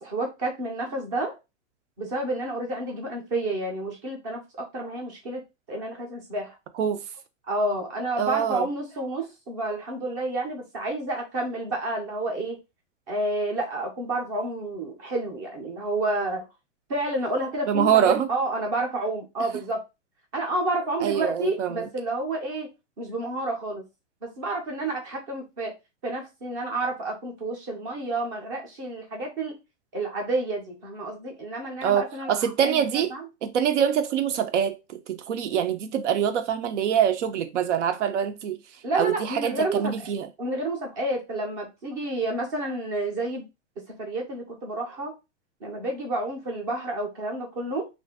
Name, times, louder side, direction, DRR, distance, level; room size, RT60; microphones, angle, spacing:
voice 1, 0.0-1.4 2.0-5.4 5.7-6.6 7.5-12.6 13.1-16.4 16.9-19.8 20.3-22.7 23.0-23.8 24.2-25.7 26.0-29.6 29.9-32.8 33.1-33.3 38.8-40.1 40.4-43.5 43.8-45.1 45.6-47.9, right 2 dB, 15° right, 0.4 m, -30 dB
voice 2, 8.2-8.7 17.7-18.3 21.0-21.9 31.8-33.1 33.4-38.6 38.9-40.3, right 8 dB, 80° right, 0.6 m, -24 dB
2.6 x 2.2 x 3.4 m
supercardioid pair, 170°, 36 cm